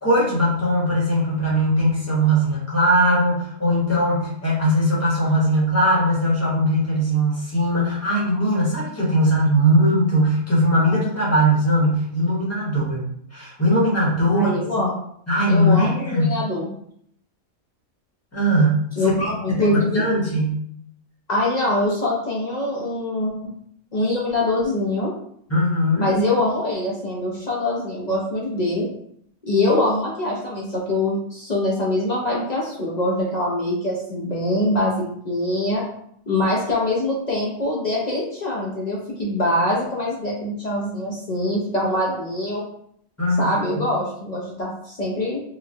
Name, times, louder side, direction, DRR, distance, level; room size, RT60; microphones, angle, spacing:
voice 1, 0.0-13.0 13.3-14.9 15.3-16.4 18.3-20.6 25.5-26.1 43.2-43.5, equal, 15° left, -6 dB, 0.9 m, -20 dB
voice 2, 14.3-14.9 15.5-16.7 19.0-20.0 21.3-23.5 23.9-25.1 26.0-28.9 29.5-35.8 36.3-42.6 43.4-45.4, left 1 dB, 75° left, -4 dB, 0.4 m, -23 dB
3.8 x 2.2 x 2.6 m, 0.68 s
omnidirectional pair, 1.5 m